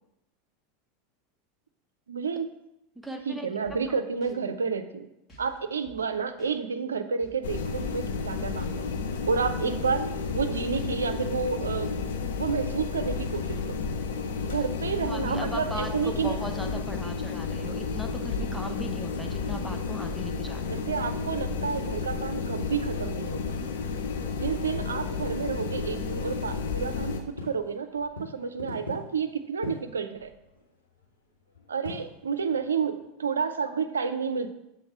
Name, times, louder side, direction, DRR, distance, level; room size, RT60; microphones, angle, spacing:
voice 1, 2.1-2.5 3.3-5.1 5.4-8.7 9.3-12.0 12.4-13.6 14.4-16.4 20.7-23.6 24.4-27.2 27.4-30.3 31.7-34.5, right 5 dB, 80° right, 10 dB, 0.5 m, -30 dB
voice 2, 3.0-3.5 15.0-20.9, equal, ahead, 4 dB, 0.9 m, -38 dB
sound 1, 3.6-3.9 4.2-4.3 5.3-5.6 5.8-6.1 6.4-6.5 7.2-7.7 8.0-8.3 8.6-8.7 9.4-9.9 10.2-10.5 10.7-10.9 11.6-12.1, right 2 dB, 25° left, 2.3 m, -51 dB
sound 2, 7.4-27.2, left 5 dB, 70° left, 0.7 m, -32 dB
sound 3, 27.1-33.1, left 2 dB, 90° left, 1.4 m, -43 dB
7.0 x 4.3 x 4.7 m, 0.86 s
figure-of-eight pair, 85°, 0 cm